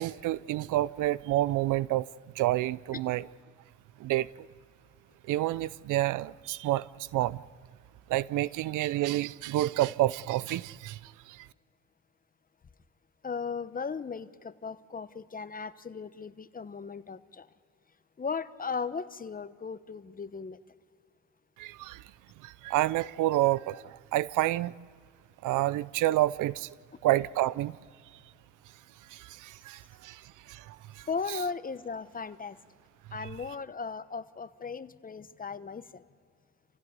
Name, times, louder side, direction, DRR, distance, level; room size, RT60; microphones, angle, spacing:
voice 1, 0.0-2.1 2.4-3.2 4.0-4.5 5.3-7.4 8.1-11.5 21.6-22.0 22.4-24.7 25.4-26.7 27.0-27.8 29.1-31.1, right 15 dB, 85° right, 0.6 m, -29 dB
voice 2, 13.2-17.5 18.2-20.6 31.1-32.6 33.1-36.0, left 5 dB, 30° left, 1.0 m, -37 dB
27.5 x 16.0 x 9.6 m
cardioid pair, 90°, 30 cm